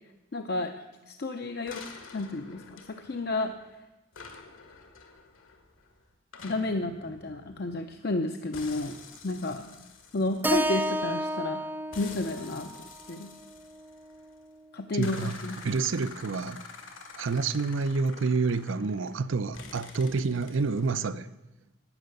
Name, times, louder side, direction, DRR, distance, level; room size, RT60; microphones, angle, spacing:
voice 1, 0.3-0.7 1.1-1.8 2.1-3.6 6.4-9.0 9.2-9.7 10.1-11.6 12.0-12.7 13.1-13.3 14.7-15.6, left 2 dB, 50° left, 0.6 m, -31 dB
sound 1, 1.7-3.7 4.1-8.1 8.5-11.3 11.9-14.4 15.0-19.2 19.5-21.0, left 4 dB, 75° left, 1.9 m, -48 dB
Keyboard (musical), 10.4-14.7, right 1 dB, 10° right, 0.4 m, -33 dB
voice 2, 14.9-15.3 15.6-16.6 17.2-21.3, right 4 dB, 70° right, 0.5 m, -28 dB
12.0 x 9.0 x 6.6 m
head